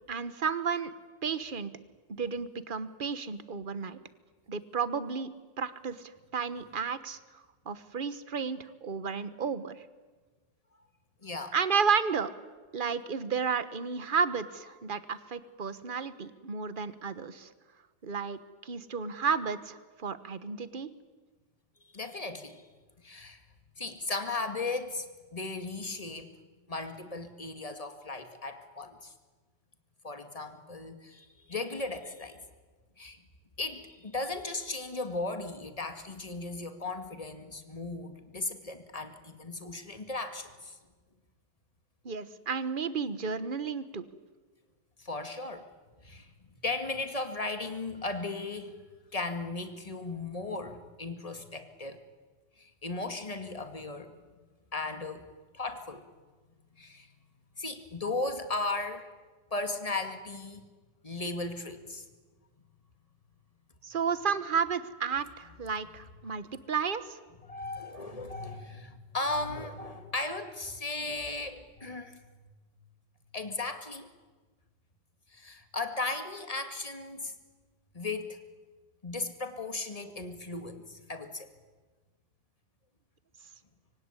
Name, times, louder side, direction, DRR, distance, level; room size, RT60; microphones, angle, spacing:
voice 1, 0.1-0.9 1.2-1.7 2.2-4.0 4.5-5.3 5.6-7.2 7.7-9.8 11.5-12.3 12.7-17.5 18.0-20.9 42.0-44.1 63.8-67.2, right 6 dB, 30° right, 14 dB, 1.1 m, -32 dB
voice 2, 11.2-11.5 21.8-22.6 23.0-23.4 23.8-26.3 26.7-29.1 30.0-32.4 33.0-33.2 33.6-40.8 45.0-45.7 46.0-46.3 46.6-48.8 49.1-52.0 52.6-54.1 54.7-55.3 55.5-56.1 56.8-57.1 57.6-59.1 59.5-60.7 61.0-62.1 65.6-65.7 67.4-72.2 73.3-74.1 75.3-77.4 77.9-78.4 79.0-81.5, left 3 dB, 20° left, 8 dB, 2.0 m, -36 dB
25.5 x 24.0 x 9.9 m, 1.3 s
omnidirectional pair, 2.0 m